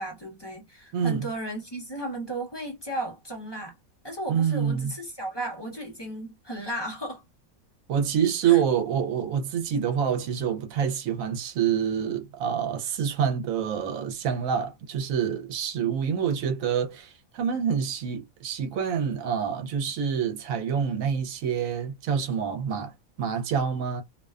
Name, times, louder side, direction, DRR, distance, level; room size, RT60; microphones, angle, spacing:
voice 1, 0.0-3.7 4.0-7.2 8.4-8.6, right 1 dB, 25° left, 0.6 m, -35 dB
voice 2, 0.9-1.3 4.3-4.9 7.9-24.0, right 8 dB, 75° right, 1.0 m, -27 dB
2.5 x 2.2 x 2.3 m
omnidirectional pair, 1.5 m